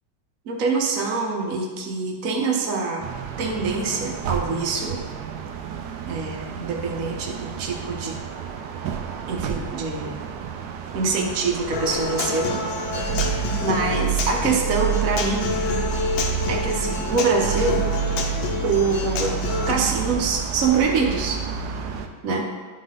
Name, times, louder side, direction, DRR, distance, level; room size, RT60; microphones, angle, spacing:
voice 1, 0.5-3.0 3.4-5.0 6.1-8.2 9.3-10.2 10.9-12.7 13.3-15.6 16.5-17.9 18.6-19.4 19.7-21.4 22.2-22.5, right 4 dB, 50° right, 0 dB, 1.2 m, -25 dB
sound 1, 3.0-22.1, right 7 dB, 70° right, 1.1 m, -29 dB
Human voice / Acoustic guitar, 11.7-19.7, left 5 dB, 85° left, 1.5 m, -29 dB
11.0 x 3.8 x 3.8 m, 1.4 s
omnidirectional pair, 2.1 m